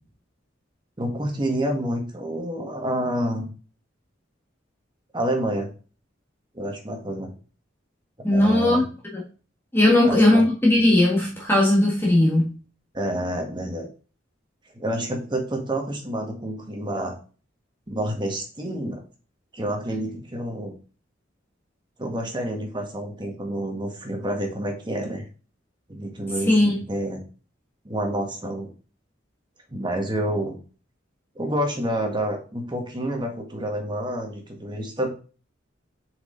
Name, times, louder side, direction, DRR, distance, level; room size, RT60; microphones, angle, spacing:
voice 1, 1.0-3.5 5.1-5.7 6.5-7.3 8.2-8.8 10.0-10.4 12.9-13.9 14.7-17.2 17.9-19.0 19.5-20.7 22.0-25.2 25.9-27.2 27.8-28.7 29.7-30.6 31.3-35.1, right 1 dB, 25° right, 1.6 m, -28 dB
voice 2, 8.2-8.8 9.1-9.2 9.7-12.5 26.5-26.8, left 1 dB, 10° left, 1.5 m, -18 dB
6.7 x 5.1 x 3.9 m
head